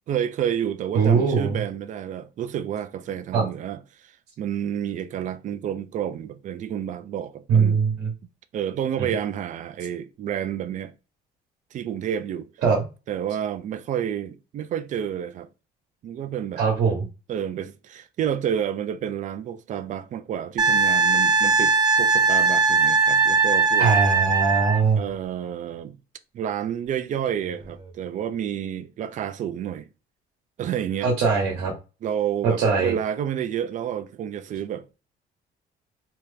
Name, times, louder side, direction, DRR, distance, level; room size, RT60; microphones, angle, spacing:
voice 1, 0.1-4.1 4.4-7.8 8.5-10.9 11.7-12.5 13.1-15.5 16.0-16.6 17.3-23.9 25.0-26.0 26.3-29.9 30.6-31.1 32.0-35.0, right 9 dB, 45° right, 0.4 m, -30 dB
voice 2, 0.9-1.6 3.3-3.4 7.5-8.1 9.0-9.1 12.6-12.8 16.6-17.0 23.8-25.0 31.0-31.7 32.4-32.9, right 5 dB, 80° right, 1.1 m, -21 dB
Wind instrument woodwind instrument, 20.6-24.8 27.5-27.6, right 4 dB, 25° right, 0.8 m, -19 dB
2.9 x 2.5 x 3.4 m
cardioid pair, 110°, 17 cm